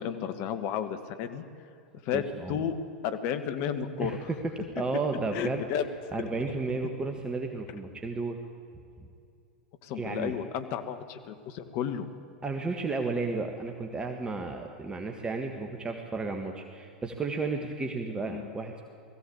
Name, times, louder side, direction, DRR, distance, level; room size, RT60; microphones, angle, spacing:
voice 1, 0.0-1.4 2.0-2.2 2.5-2.8 3.0-4.3 5.3-6.1 9.8-12.1 18.3-18.5, left 8 dB, 50° left, 10 dB, 1.6 m, -32 dB
voice 2, 2.1-2.6 4.0-4.4 4.8-5.6 6.1-8.4 10.0-10.3 12.4-18.8, right 3 dB, 15° right, 4 dB, 1.6 m, -33 dB
20.0 x 15.5 x 8.6 m, 2.5 s
hypercardioid pair, 95°, 5 cm